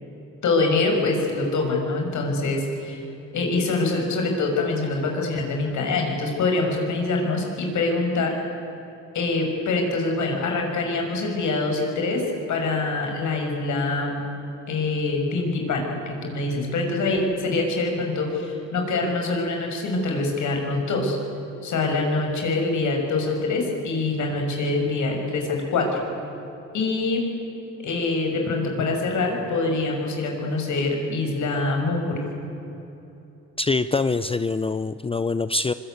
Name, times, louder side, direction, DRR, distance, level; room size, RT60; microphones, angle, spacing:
voice 1, 0.4-3.0 3.3-8.3 9.1-12.2 12.5-14.3 14.7-21.2 21.6-26.0 26.7-27.3 27.8-32.2, left 3 dB, 70° left, 2 dB, 6.4 m, -24 dB
voice 2, 33.6-35.7, left 3 dB, 20° left, 13 dB, 0.6 m, -24 dB
24.5 x 22.5 x 9.6 m, 3.0 s
cardioid pair, 90°, 30 cm